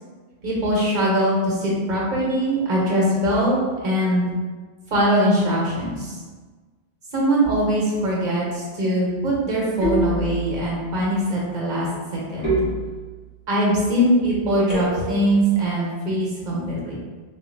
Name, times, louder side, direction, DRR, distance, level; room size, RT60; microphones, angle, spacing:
voice 1, 0.4-4.3 4.9-6.2 7.1-12.7 13.5-16.9, equal, 45° right, -5 dB, 1.1 m, -22 dB
sound 1, 7.4-8.0 9.8-10.7 12.4-13.4 14.7-15.4, right 2 dB, 35° left, 1.6 m, -27 dB
3.6 x 2.6 x 2.6 m, 1.4 s
omnidirectional pair, 1.1 m